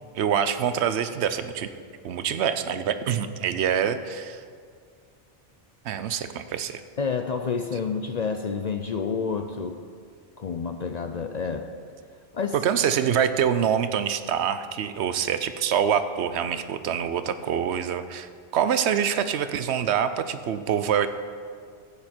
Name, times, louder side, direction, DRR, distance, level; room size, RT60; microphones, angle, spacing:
voice 1, 0.1-1.7 2.0-4.4 5.8-6.8 12.6-21.1, right 8 dB, 85° right, 11 dB, 0.9 m, -25 dB
voice 2, 7.0-9.8 10.4-11.7 12.3-12.6, left 5 dB, 50° left, 6 dB, 0.5 m, -29 dB
15.0 x 8.7 x 4.4 m, 2.1 s
omnidirectional pair, 1.1 m